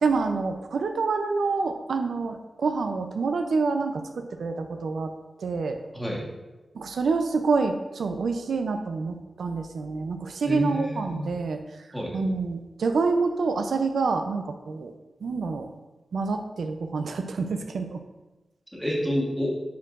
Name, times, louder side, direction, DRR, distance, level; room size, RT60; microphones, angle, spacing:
voice 1, 0.0-5.1 5.4-5.8 6.7-11.6 12.1-14.9 15.2-15.7 16.1-18.0, right 4 dB, 85° right, 6 dB, 0.4 m, -27 dB
voice 2, 5.9-6.3 10.4-11.3 11.9-12.2 18.7-19.5, equal, ahead, -4 dB, 1.4 m, -29 dB
9.1 x 4.5 x 2.5 m, 1.1 s
wide cardioid pair, 135°, 0 cm